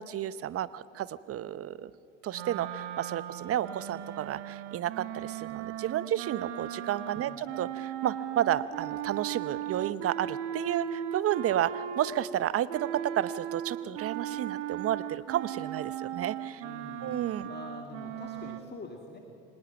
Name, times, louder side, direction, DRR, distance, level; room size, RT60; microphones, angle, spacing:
voice 1, 0.0-1.9 2.2-16.6 17.0-17.5, right 11 dB, 40° right, 17 dB, 0.8 m, -32 dB
sound 1, 2.3-12.3 12.7-18.6, right 11 dB, 75° right, 1.3 m, -37 dB
voice 2, 16.6-17.2 17.5-19.2, left 3 dB, 25° left, 2 dB, 2.3 m, -45 dB
25.0 x 19.0 x 6.0 m, 2.7 s
hypercardioid pair, 75°, 37 cm